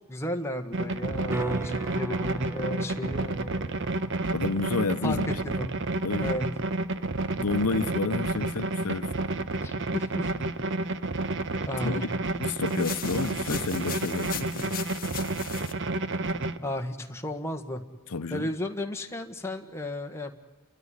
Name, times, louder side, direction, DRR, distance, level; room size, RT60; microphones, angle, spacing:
voice 1, 0.1-3.8 5.0-5.7 6.2-6.5 9.6-10.3 11.7-12.1 16.6-17.8 18.3-20.3, left 1 dB, 10° left, 1.5 m, -34 dB
sound 1, 0.7-16.6, right 2 dB, 55° right, 0.9 m, -30 dB
sound 2, 1.3-7.3 12.0-12.1, right 2 dB, 10° right, 1.1 m, -41 dB
voice 2, 4.3-5.3 6.0-6.4 7.4-9.1 11.8-12.1 12.4-14.8 18.1-18.5, left 4 dB, 85° left, 0.8 m, -30 dB
sound 3, 12.7-15.7, left 10 dB, 40° left, 1.3 m, -38 dB
30.0 x 13.5 x 9.8 m
head